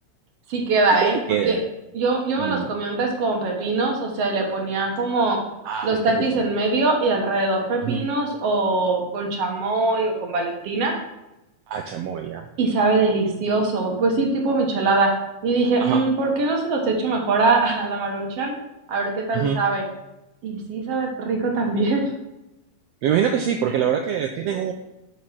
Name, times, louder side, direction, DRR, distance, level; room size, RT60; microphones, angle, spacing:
voice 1, 0.5-1.6 1.9-5.4 5.8-11.0 12.6-15.1 15.4-18.5 18.9-19.8 20.4-22.1 23.7-23.8, right 3 dB, 60° right, 1 dB, 2.0 m, -22 dB
voice 2, 1.0-1.6 2.4-2.7 5.7-6.0 7.8-8.0 11.7-12.4 15.8-16.0 19.3-19.6 23.0-24.7, right 8 dB, 90° right, 5 dB, 1.4 m, -24 dB
7.3 x 5.2 x 6.0 m, 0.94 s
omnidirectional pair, 3.5 m